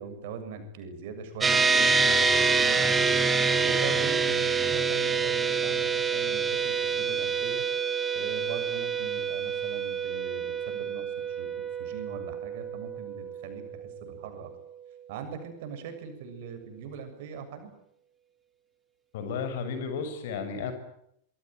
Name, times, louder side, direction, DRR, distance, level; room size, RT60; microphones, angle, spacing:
voice 1, 0.0-3.1 3.6-7.6 8.1-14.5 15.1-17.7, right 6 dB, 50° right, 7 dB, 7.1 m, -41 dB
sound 1, 1.4-15.0, right 5 dB, 15° right, 3.1 m, -27 dB
voice 2, 19.1-20.7, left 5 dB, 55° left, 9 dB, 6.1 m, -33 dB
26.0 x 23.5 x 9.1 m, 0.75 s
figure-of-eight pair, 90°, 0 cm